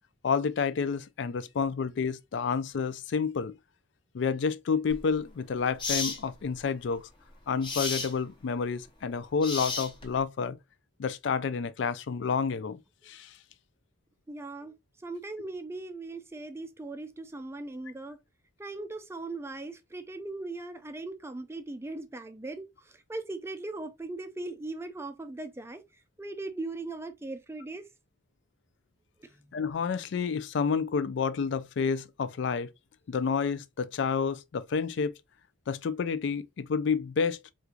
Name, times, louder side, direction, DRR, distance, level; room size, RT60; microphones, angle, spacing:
voice 1, 0.2-3.5 4.1-7.1 7.5-10.6 11.0-12.8 13.1-13.3 29.5-32.7 33.1-35.1 35.7-37.5, left 5 dB, 60° left, 0.3 m, -29 dB
sound 1, 4.9-5.1 5.8-6.2 7.6-8.1 9.4-10.2, left 4 dB, 25° left, 0.7 m, -32 dB
voice 2, 14.3-18.2 18.6-25.8 26.2-27.9 29.2-29.3, right 2 dB, 15° right, 0.4 m, -39 dB
4.3 x 2.5 x 2.3 m
head